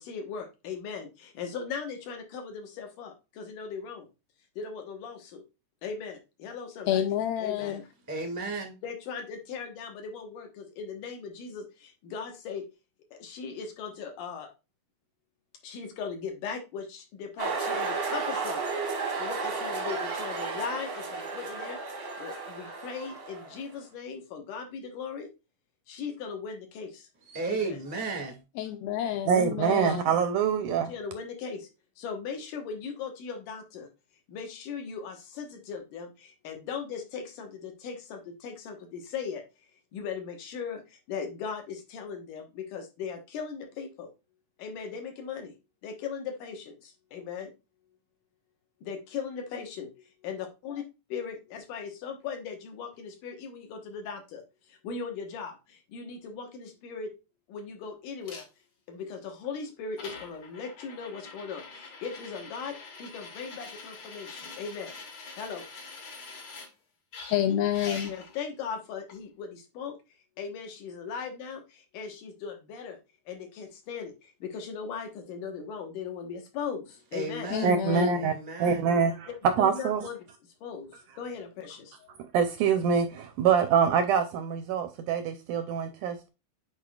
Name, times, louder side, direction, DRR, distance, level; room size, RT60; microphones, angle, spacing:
voice 1, 0.0-4.1 4.6-5.4 5.8-7.0 7.4-7.9 8.8-12.6 13.1-14.5 15.6-18.6 19.2-25.3 25.9-27.1 27.5-27.8 30.9-31.7 32.0-33.9 34.3-39.4 39.9-44.1 44.6-45.5 45.8-47.5 48.8-49.9 50.2-50.8 51.1-57.1 57.5-58.5 58.9-65.0 65.4-65.7 68.1-70.0 70.4-73.0 73.3-77.5 79.6-80.2 80.6-82.2, left 6 dB, 65° left, 2.6 m, -38 dB
voice 2, 6.9-7.8 28.6-30.1 67.3-68.1 77.5-78.3, left 10 dB, 85° left, 2.5 m, -29 dB
voice 3, 8.1-8.8 27.2-28.4 77.1-77.8 78.1-78.9, right 3 dB, 10° right, 1.0 m, -34 dB
sound 1, 17.4-23.7, right 4 dB, 55° right, 1.0 m, -33 dB
voice 4, 29.3-30.9 77.6-78.3 78.6-79.3 79.6-80.1 82.3-86.3, right 7 dB, 80° right, 1.9 m, -25 dB
sound 2, 58.3-58.4 59.4-59.5 60.0-66.7 67.1-68.4 69.1-69.2, left 4 dB, 50° left, 2.0 m, -44 dB
8.6 x 4.8 x 2.3 m
omnidirectional pair, 4.2 m